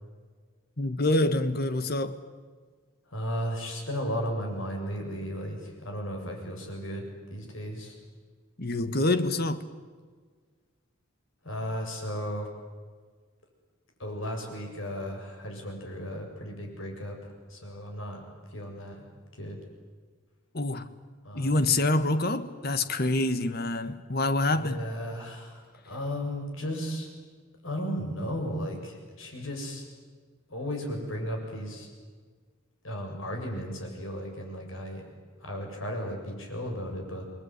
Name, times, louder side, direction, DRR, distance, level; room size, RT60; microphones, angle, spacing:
voice 1, 0.8-2.2 8.6-9.7 20.5-20.9 21.3-24.8, left 2 dB, 50° left, 1.6 m, -26 dB
voice 2, 3.1-8.0 11.4-12.5 14.0-18.2 18.5-19.0 19.4-19.6 21.2-21.6 24.5-27.1 27.6-29.8 30.5-31.9 32.8-35.0 35.4-37.2, equal, 75° left, 7.3 m, -35 dB
28.5 x 21.0 x 9.6 m
head